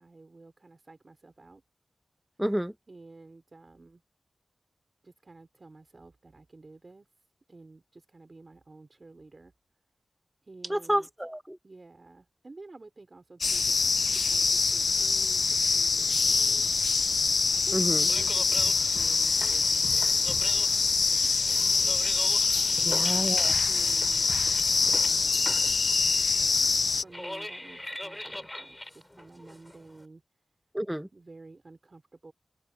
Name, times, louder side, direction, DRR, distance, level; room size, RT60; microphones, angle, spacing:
voice 1, 0.0-1.6 2.9-4.0 5.0-9.5 10.4-11.1 11.6-13.8 14.2-24.3 24.8-26.1 26.4-30.2 31.1-32.3, right 3 dB, 45° right, 4.7 m, -52 dB
voice 2, 2.4-2.7 10.7-11.6 17.7-18.1 22.9-23.5 30.7-31.1, equal, 10° right, 1.1 m, -29 dB
sound 1, 13.4-27.0, left 4 dB, 65° left, 0.4 m, -25 dB
sound 2, 17.8-30.0, left 1 dB, 15° left, 4.2 m, -42 dB
cardioid pair, 65°, 0 cm